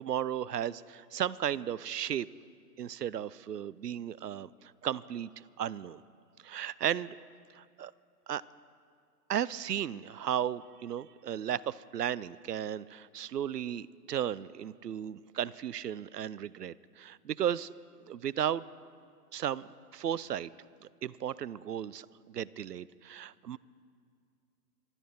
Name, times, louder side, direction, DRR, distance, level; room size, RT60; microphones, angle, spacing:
voice 1, 0.0-2.3 2.8-6.0 6.4-7.2 7.5-7.9 8.3-8.4 9.3-17.7 18.0-18.6 19.3-20.5 20.8-23.6, right 10 dB, 75° right, 21 dB, 0.6 m, -35 dB
24.5 x 12.5 x 4.3 m, 2.2 s
figure-of-eight pair, 130°, 48 cm